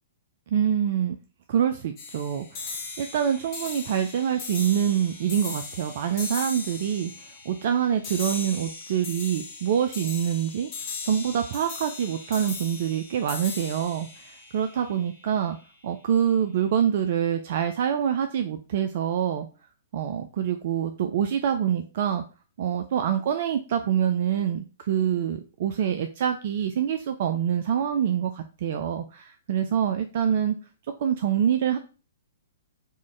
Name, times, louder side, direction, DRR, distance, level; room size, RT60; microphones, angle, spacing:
voice 1, 0.5-1.2 1.5-2.7 3.0-10.7 11.0-15.6 15.8-19.5 19.9-22.2 22.6-30.6 31.0-31.8, right 9 dB, 50° right, 7 dB, 0.3 m, -26 dB
sound 1, 2.0-15.4, left 4 dB, 35° left, 1.4 m, -38 dB
3.6 x 2.5 x 3.1 m, 0.35 s
figure-of-eight pair, 115°, 0 cm